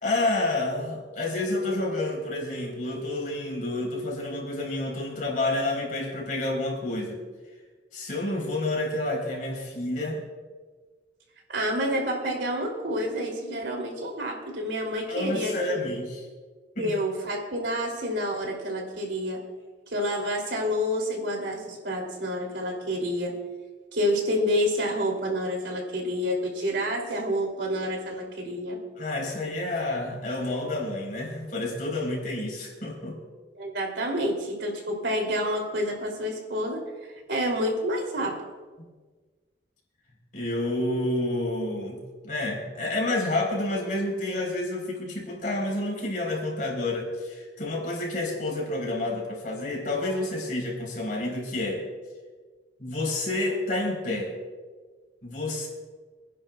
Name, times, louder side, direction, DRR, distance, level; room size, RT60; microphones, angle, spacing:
voice 1, 0.0-7.2 7.9-10.2 15.1-16.2 16.8-16.9 29.0-33.2 38.8-38.9 40.3-51.8 52.8-54.3 55.2-55.7, left 2 dB, 50° left, -1 dB, 4.1 m, -29 dB
voice 2, 11.5-15.8 16.8-19.4 19.9-23.3 23.9-28.8 33.6-36.8 37.3-38.3, equal, 80° right, 0 dB, 3.0 m, -28 dB
26.5 x 10.5 x 2.4 m, 1.4 s
head